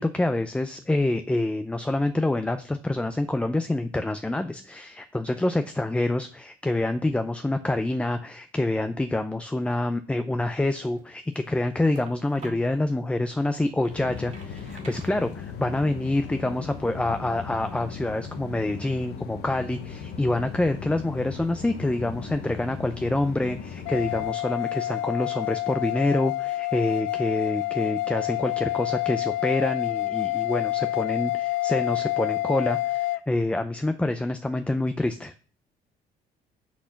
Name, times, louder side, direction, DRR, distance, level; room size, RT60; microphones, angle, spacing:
voice 1, 0.0-35.3, left 2 dB, 5° left, 9 dB, 0.5 m, -27 dB
sound 1, 10.7-12.8 13.3-15.8, right 2 dB, 45° right, 2.4 m, -49 dB
sound 2, 13.9-24.3, left 6 dB, 75° left, 1.1 m, -38 dB
sound 3, 23.9-33.2, left 17 dB, 90° left, 0.4 m, -28 dB
6.3 x 6.1 x 5.8 m, 0.40 s
cardioid pair, 110°, 17 cm